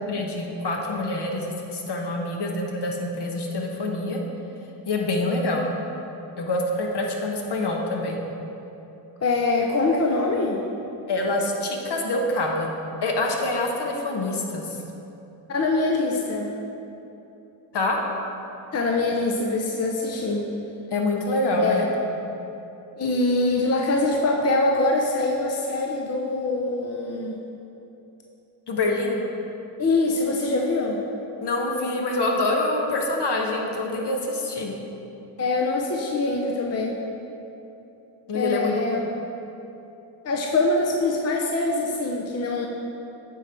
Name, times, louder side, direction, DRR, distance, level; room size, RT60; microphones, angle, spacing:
voice 1, 0.1-4.2 4.9-5.7 6.4-8.2 11.1-12.7 13.0-14.8 17.7-18.0 20.9-21.9 28.7-29.2 31.4-34.8 38.3-39.1, left 2 dB, 55° left, 0 dB, 1.3 m, -26 dB
voice 2, 9.2-10.6 15.5-16.5 18.7-20.5 21.6-21.9 23.0-27.4 29.8-31.0 35.4-37.0 38.3-39.0 40.2-42.7, left 2 dB, 30° left, 0 dB, 0.7 m, -24 dB
9.0 x 3.8 x 4.5 m, 2.9 s
supercardioid pair, 50°, 49 cm